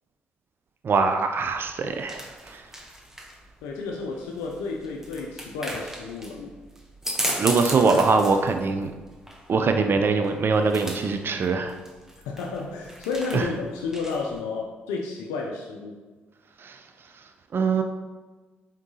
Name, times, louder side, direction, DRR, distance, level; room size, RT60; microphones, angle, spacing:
voice 1, 0.8-2.6 7.4-8.9 9.5-11.8 13.3-13.5 16.6-16.8 17.5-17.8, right 4 dB, 45° right, 6 dB, 0.4 m, -22 dB
sound 1, 1.4-14.4, right 1 dB, 10° right, 0.8 m, -37 dB
voice 2, 3.6-6.5 12.2-16.0, left 4 dB, 80° left, 0 dB, 0.4 m, -31 dB
4.6 x 3.6 x 2.7 m, 1.3 s
hypercardioid pair, 50°, 5 cm